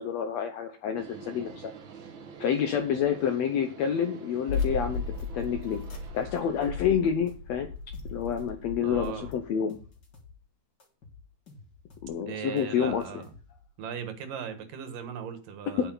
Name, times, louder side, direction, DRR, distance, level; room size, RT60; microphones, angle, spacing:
voice 1, 0.0-1.7 2.4-5.0 5.3-5.8 6.1-7.7 8.1-9.8 12.0-13.0 15.8-15.9, left 8 dB, 75° left, 6 dB, 1.6 m, -28 dB
sound 1, 1.0-6.7, right 5 dB, 55° right, 1.5 m, -47 dB
sound 2, 4.5-9.3, left 4 dB, 55° left, 3.0 m, -35 dB
sound 3, 6.6-6.9 7.3-8.6 9.0-10.4 10.8-12.2 12.6-13.7, left 4 dB, 35° left, 2.2 m, -52 dB
voice 2, 8.8-9.3 12.3-13.2 13.8-15.9, right 7 dB, 75° right, 7 dB, 3.0 m, -38 dB
9.3 x 8.2 x 3.9 m, 0.36 s
omnidirectional pair, 3.9 m